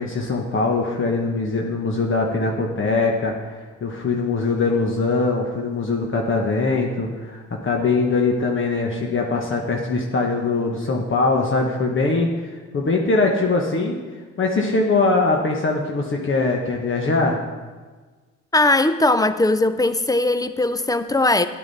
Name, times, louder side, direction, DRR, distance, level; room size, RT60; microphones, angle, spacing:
voice 1, 0.0-14.0 14.4-17.4, left 3 dB, 40° left, 1 dB, 1.2 m, -22 dB
voice 2, 18.5-21.5, left 2 dB, 10° left, 12 dB, 0.5 m, -19 dB
9.8 x 8.8 x 4.1 m, 1.4 s
cardioid pair, 90°, 30 cm